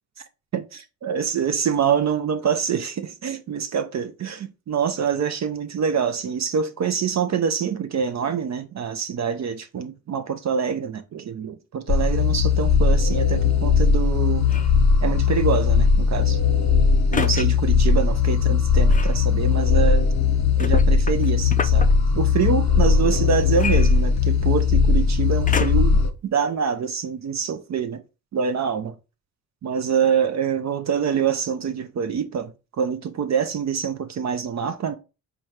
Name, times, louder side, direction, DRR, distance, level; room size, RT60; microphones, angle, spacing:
voice 1, 0.5-14.5 15.0-16.4 17.1-20.1 20.6-21.9 22.1-28.0 28.3-29.0 29.6-35.0, right 7 dB, 40° right, 0.5 m, -25 dB
sound 1, 11.9-26.1, left 5 dB, 40° left, 0.9 m, -19 dB
sound 2, 14.4-14.8 17.1-17.5 18.9-19.2 20.6-21.9 23.5-24.5 25.5-26.0 26.7-26.8, left 5 dB, 20° left, 0.5 m, -29 dB
4.1 x 2.3 x 4.7 m
supercardioid pair, 60°, 43 cm